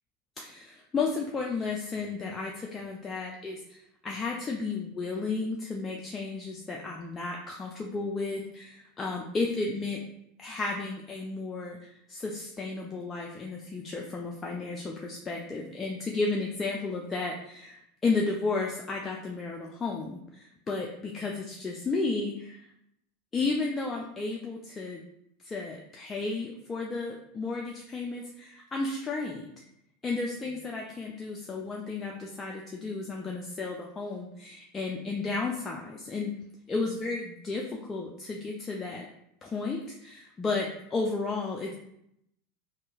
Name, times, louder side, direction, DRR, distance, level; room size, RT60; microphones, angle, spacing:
voice 1, 0.4-10.0 10.4-22.7 23.3-25.0 25.4-29.5 30.0-36.3 36.7-39.1 39.4-41.8, left 3 dB, 20° left, -1 dB, 0.4 m, -33 dB
2.9 x 2.6 x 2.3 m, 0.77 s
hypercardioid pair, 85°, 0 cm